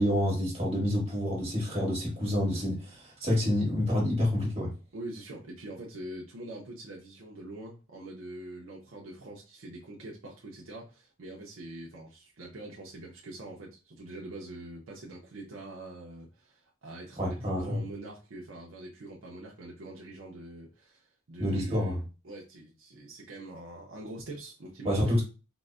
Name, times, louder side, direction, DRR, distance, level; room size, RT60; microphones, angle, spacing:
voice 1, 0.0-4.7 17.2-17.8 21.4-22.0 24.8-25.2, left 1 dB, 30° right, 1.2 m, -28 dB
voice 2, 4.9-25.2, right 2 dB, 65° right, 0.6 m, -44 dB
3.8 x 2.0 x 2.3 m
head